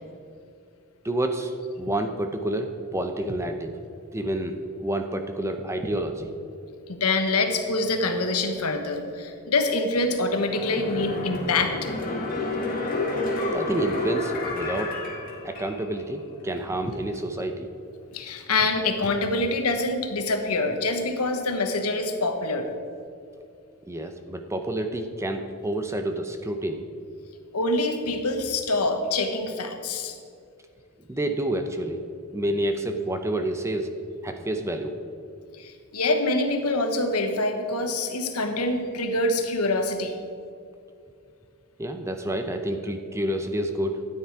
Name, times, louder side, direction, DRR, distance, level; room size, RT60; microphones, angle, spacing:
voice 1, 1.0-3.8 4.1-6.3 13.5-15.0 15.4-17.7 23.9-26.9 31.1-32.0 32.3-34.0 34.2-34.9 41.8-44.1, right 1 dB, 15° right, 6 dB, 0.6 m, -29 dB
voice 2, 6.9-11.9 18.1-22.7 27.5-30.2 35.6-40.1, left 2 dB, 85° left, 6 dB, 1.2 m, -25 dB
sound 1, 10.5-16.0 16.4-16.5, left 2 dB, 40° left, 1.9 m, -30 dB
13.0 x 9.4 x 4.7 m, 2.4 s
head